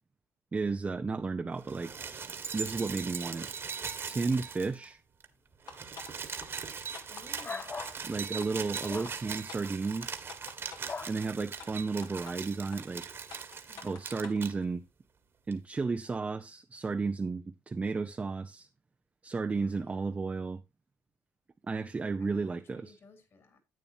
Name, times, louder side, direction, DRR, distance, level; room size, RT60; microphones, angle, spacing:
voice 1, 0.5-1.9 2.5-3.5 4.1-5.0 8.1-10.3 11.1-13.0 13.8-14.8 15.5-18.7 19.2-20.6 21.7-22.9, right 4 dB, 20° right, 0.7 m, -33 dB
sound 1, 1.6-4.9 5.2-5.3 5.5-14.5 15.5-15.6, right 6 dB, 40° right, 1.6 m, -40 dB
sound 2, 5.7-6.1 6.4-6.5 6.9-7.9 8.4-8.5 8.8-9.1 9.5-9.6 10.0-11.0 11.6-11.7 12.0-12.3 12.7-12.8 13.3-14.4, left 6 dB, 70° left, 2.0 m, -47 dB
voice 2, 7.1-7.8 13.7-14.0 19.5-20.1 21.8-23.6, left 3 dB, 50° left, 3.1 m, -57 dB
sound 3, 7.4-8.0 8.9-9.1 10.9-11.2, left 4 dB, 25° left, 0.4 m, -39 dB
11.0 x 8.6 x 2.8 m
cardioid pair, 110°, 6 cm